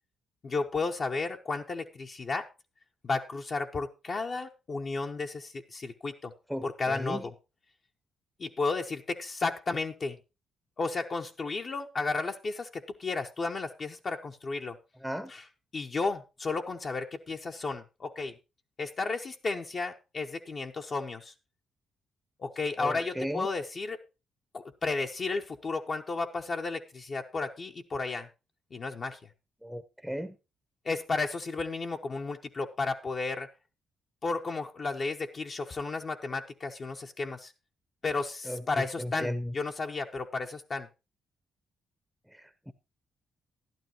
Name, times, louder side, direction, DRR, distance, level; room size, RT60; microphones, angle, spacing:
voice 1, 0.4-2.5 3.0-6.3 6.6-7.3 8.4-10.2 10.8-14.8 15.3-15.5 15.7-18.3 18.8-21.3 22.4-24.0 24.5-28.3 28.7-29.2 30.8-33.5 34.2-37.5 38.0-40.9, left 3 dB, 45° left, 0.9 m, -33 dB
voice 2, 6.5-7.2 15.0-15.3 22.8-23.5 29.6-30.3 38.5-38.6 39.0-39.5 42.4-42.7, equal, ahead, 0.7 m, -35 dB
12.0 x 11.5 x 3.0 m
cardioid pair, 100°, 0 cm